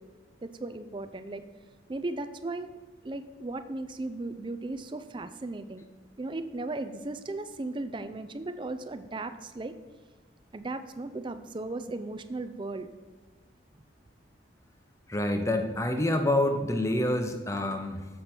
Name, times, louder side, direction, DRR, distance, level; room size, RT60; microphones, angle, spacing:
voice 1, 0.4-1.4 1.9-2.8 3.0-5.8 6.2-9.7 10.5-12.9, right 2 dB, 25° right, 11 dB, 0.4 m, -36 dB
voice 2, 15.1-18.1, left 1 dB, 15° left, 5 dB, 0.7 m, -27 dB
7.7 x 6.6 x 4.4 m, 1.4 s
head